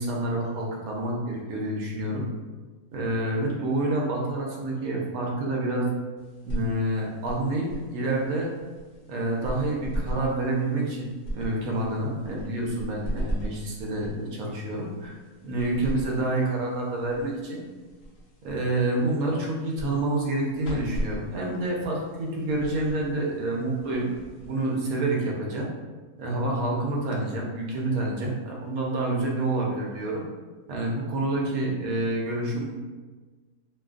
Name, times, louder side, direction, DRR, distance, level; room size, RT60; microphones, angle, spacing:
voice 1, 0.0-2.3 2.9-5.9 6.4-8.5 9.1-11.1 11.3-15.2 15.4-17.6 18.4-24.1 24.4-25.7 26.2-30.2 30.7-32.9, right 2 dB, 70° right, -2 dB, 1.0 m, -28 dB
sound 1, 6.2-25.1, right 1 dB, 60° left, 0.9 m, -39 dB
2.9 x 2.3 x 2.3 m, 1.3 s
omnidirectional pair, 1.6 m